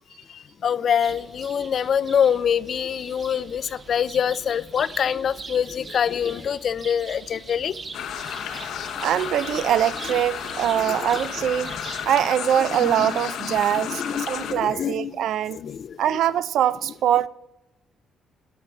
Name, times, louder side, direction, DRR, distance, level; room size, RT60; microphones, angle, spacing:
voice 1, 0.3-7.8 10.7-11.0 11.6-11.8 12.8-13.1 13.4-15.2 15.5-16.0, left 8 dB, 60° left, 0.3 m, -25 dB
sound 1, 1.0-12.1, right 4 dB, 40° right, 1.0 m, -42 dB
sound 2, 7.9-14.5, left 8 dB, 80° left, 0.9 m, -32 dB
voice 2, 9.0-11.7 12.1-15.6 16.0-17.3, right 10 dB, 75° right, 0.3 m, -23 dB
11.5 x 5.8 x 6.1 m
cardioid pair, 90°, 0 cm